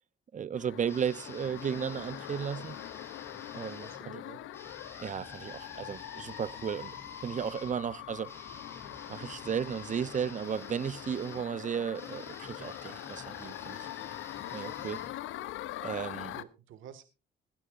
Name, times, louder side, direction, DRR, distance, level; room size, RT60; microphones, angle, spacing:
voice 1, 0.3-2.8 3.5-4.2 5.0-7.0 7.2-8.3 9.1-13.9 14.5-15.0 15.8-16.4, right 7 dB, 40° right, 0.6 m, -34 dB
sound 1, 0.5-16.4, left 14 dB, 85° left, 0.7 m, -43 dB
sound 2, 0.9-4.0 4.5-15.7, left 1 dB, 10° left, 4.0 m, -51 dB
voice 2, 3.9-4.4 16.0-17.0, right 10 dB, 80° right, 1.7 m, -51 dB
20.0 x 12.0 x 2.5 m
cardioid pair, 90°, 20 cm